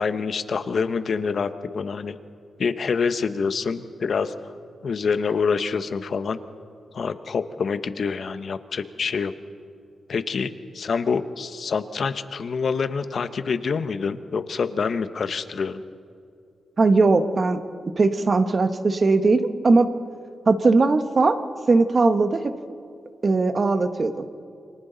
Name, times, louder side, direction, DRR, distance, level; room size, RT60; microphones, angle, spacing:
voice 1, 0.0-2.2 2.6-4.3 4.8-6.4 6.9-9.3 10.1-15.8, left 5 dB, 60° left, 11 dB, 1.0 m, -26 dB
voice 2, 16.8-17.6 18.0-19.9 20.5-21.4 21.7-22.5 23.2-24.3, right 3 dB, 40° right, 9 dB, 1.2 m, -19 dB
28.5 x 24.5 x 4.0 m, 2.3 s
cardioid pair, 100°, 0 cm